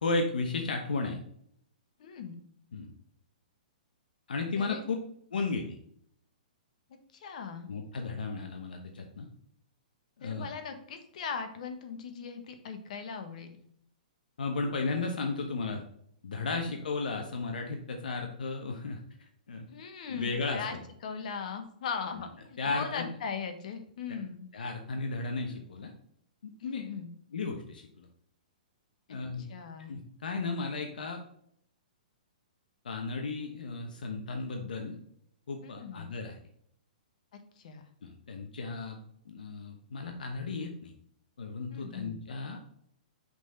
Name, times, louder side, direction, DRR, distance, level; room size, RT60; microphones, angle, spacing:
voice 1, 0.0-1.2 2.7-2.9 4.3-5.0 5.3-5.8 7.7-9.3 10.2-10.5 14.4-15.8 16.2-19.0 19.5-19.7 20.1-20.6 22.6-23.1 24.5-25.9 26.4-26.8 27.3-28.1 29.1-29.5 29.8-31.2 32.8-35.0 35.5-36.3 38.0-40.9 41.4-42.6, left 3 dB, 85° left, 3 dB, 1.0 m, -34 dB
voice 2, 2.0-2.4 4.6-4.8 7.1-7.7 10.2-13.5 16.5-16.7 19.7-20.7 21.0-24.5 26.6-27.1 29.4-30.0 35.6-36.1 37.3-37.8 41.7-42.1, left 6 dB, 55° left, 7 dB, 1.2 m, -39 dB
6.0 x 4.0 x 4.2 m, 0.68 s
hypercardioid pair, 150°, 5 cm